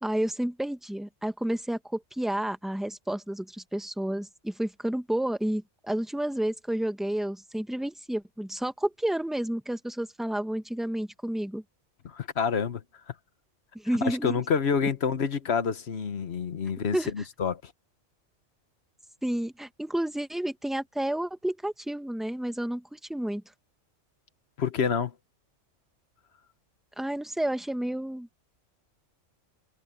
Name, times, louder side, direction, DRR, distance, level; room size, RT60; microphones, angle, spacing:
voice 1, 0.0-11.6 13.7-14.4 16.9-17.1 19.2-23.4 27.0-28.4, right 1 dB, ahead, 1.2 m, -30 dB
voice 2, 12.0-12.8 14.0-17.7 24.6-25.1, left 6 dB, 60° left, 1.3 m, -28 dB
omnidirectional pair, 1.3 m